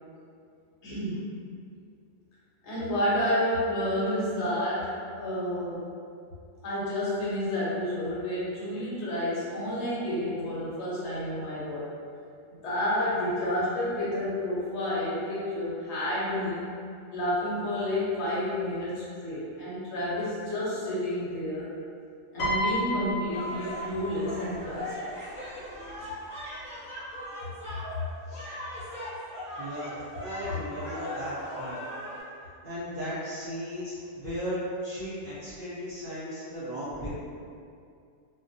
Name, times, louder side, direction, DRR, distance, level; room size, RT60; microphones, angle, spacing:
voice 1, 0.8-1.3 2.6-5.9 6.6-11.9 12.6-16.7 17.1-21.7 22.3-25.0, left 1 dB, 65° left, -8 dB, 0.9 m, -30 dB
Piano, 22.4-24.8 25.8-26.1, equal, 90° left, 1.0 m, -32 dB
sound 1, 23.3-32.2, equal, 10° right, 0.3 m, -39 dB
voice 2, 29.6-31.8 32.6-37.1, equal, 55° right, -12 dB, 0.6 m, -36 dB
2.3 x 2.1 x 2.5 m, 2.4 s
omnidirectional pair, 1.3 m